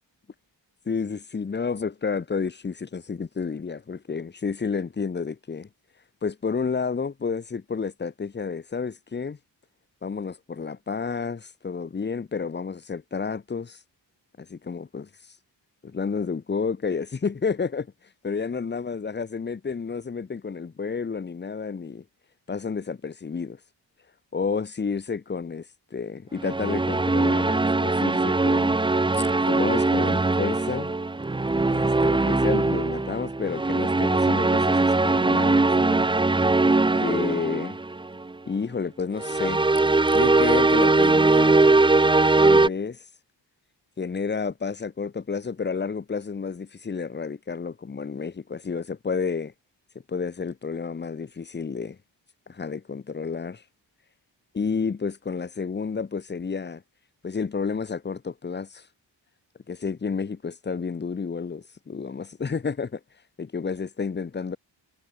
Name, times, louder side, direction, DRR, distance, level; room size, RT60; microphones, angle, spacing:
voice 1, 0.9-5.7 6.2-9.4 10.0-13.8 14.4-15.1 15.8-17.9 18.2-22.0 22.5-23.6 24.3-25.7 25.9-28.8 29.1-30.9 31.7-36.0 37.0-37.8 38.4-39.6 40.1-41.8 42.4-43.0 44.0-49.5 50.1-52.0 52.5-53.6 54.5-56.8 57.2-58.8 59.7-63.0 63.4-64.6, left 5 dB, 25° left, 0.7 m, -30 dB
sound 1, 26.3-38.3 39.2-42.7, right 3 dB, 10° right, 0.5 m, -21 dB
wide cardioid pair, 125°, 44 cm